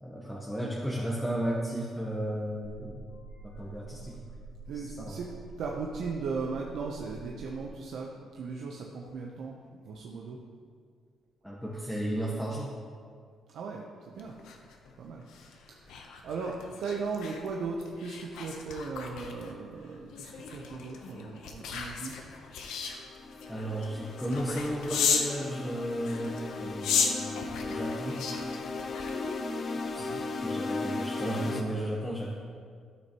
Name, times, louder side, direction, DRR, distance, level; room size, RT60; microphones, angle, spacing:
voice 1, 0.0-3.0 3.4-4.2 4.7-5.2 11.4-12.7 23.5-28.2 29.9-30.1 30.4-32.3, right 1 dB, ahead, -5 dB, 1.1 m, -34 dB
sound 1, 2.6-7.6, right 3 dB, 65° left, 1.2 m, -47 dB
voice 2, 4.7-5.3 5.6-10.4 13.5-14.3 15.0-15.2 15.7-22.2 30.0-30.2, right 4 dB, 70° right, -1 dB, 0.8 m, -37 dB
sound 2, 14.2-25.4 26.0-29.6 30.0-30.3, left 6 dB, 85° left, 0.8 m, -35 dB
sound 3, 22.5-31.6, left 3 dB, 45° left, 0.6 m, -36 dB
12.5 x 6.2 x 3.0 m, 2.1 s
cardioid pair, 90°, 0 cm